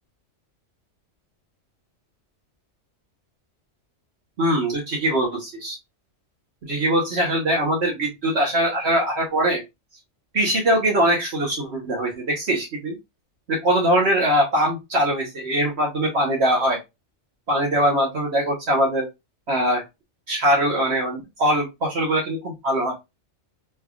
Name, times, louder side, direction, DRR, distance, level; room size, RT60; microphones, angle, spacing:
voice 1, 4.4-5.8 6.7-9.6 10.3-13.0 13.5-16.8 17.5-19.1 19.5-19.8 20.3-22.9, right 1 dB, 60° right, -1 dB, 1.2 m, -22 dB
3.4 x 3.2 x 2.3 m, 0.22 s
omnidirectional pair, 1.3 m